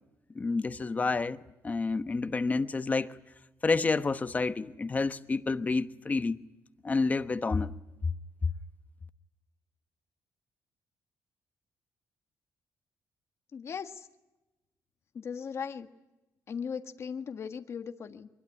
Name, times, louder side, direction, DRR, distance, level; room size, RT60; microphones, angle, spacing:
voice 1, 0.3-1.4 1.6-3.1 3.6-6.4 6.8-7.7, left 3 dB, 25° left, 1.0 m, -29 dB
voice 2, 13.5-14.1 15.1-15.9 16.5-18.3, left 6 dB, 45° left, 1.6 m, -38 dB
24.0 x 21.0 x 9.8 m
cardioid pair, 135°, 7 cm